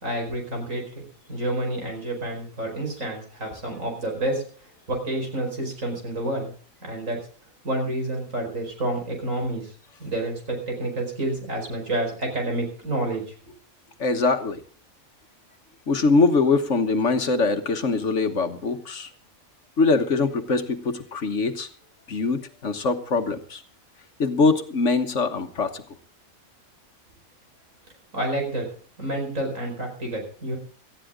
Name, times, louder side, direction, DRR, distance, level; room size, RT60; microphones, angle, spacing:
voice 1, 0.0-1.0 1.3-4.4 4.9-6.5 6.8-7.2 7.6-9.7 10.0-13.2 28.1-28.7 29.0-30.6, right 1 dB, 70° right, 2 dB, 5.3 m, -29 dB
voice 2, 14.0-14.6 15.9-19.1 19.8-21.7 22.1-23.6 24.2-25.8, left 3 dB, 60° left, 8 dB, 1.5 m, -23 dB
18.0 x 14.0 x 3.7 m, 0.40 s
omnidirectional pair, 1.4 m